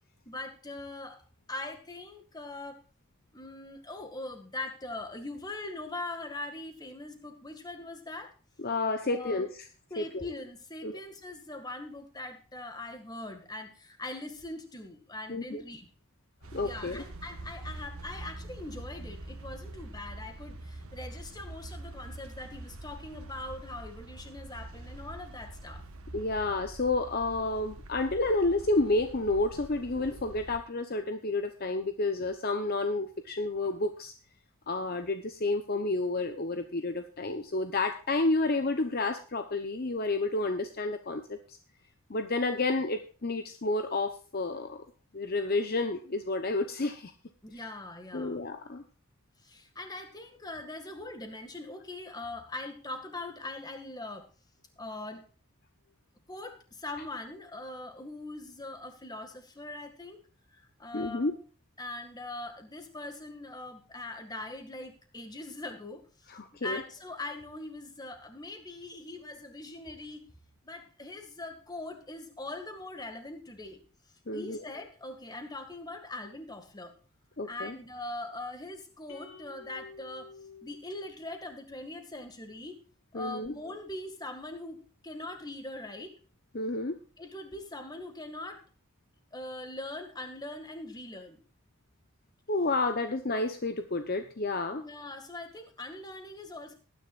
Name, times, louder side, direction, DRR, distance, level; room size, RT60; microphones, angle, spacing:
voice 1, 0.3-1.2 1.5-2.8 3.3-8.3 9.0-9.4 9.9-15.9 16.6-25.8 47.4-48.4 49.4-54.3 54.8-55.3 56.3-60.2 60.5-61.3 61.8-70.2 70.6-73.8 74.3-76.9 77.4-80.3 80.6-82.9 83.1-84.8 85.0-86.2 87.2-88.6 89.3-91.4 94.7-96.7, left 2 dB, 20° left, 6 dB, 1.9 m, -41 dB
voice 2, 8.6-9.5 10.0-10.2 10.8-11.0 15.3-15.6 16.5-17.0 26.1-34.1 34.7-41.6 42.1-44.8 45.1-47.1 48.1-48.8 60.9-61.4 66.3-66.8 74.3-74.6 77.4-77.8 83.1-83.5 86.5-87.0 92.5-94.8, left 2 dB, 45° left, 7 dB, 0.9 m, -30 dB
sound 1, 16.4-30.6, right 1 dB, 85° right, 1.4 m, -45 dB
sound 2, 79.1-81.6, left 3 dB, 75° left, 4.9 m, -51 dB
19.0 x 10.0 x 2.5 m, 0.37 s
head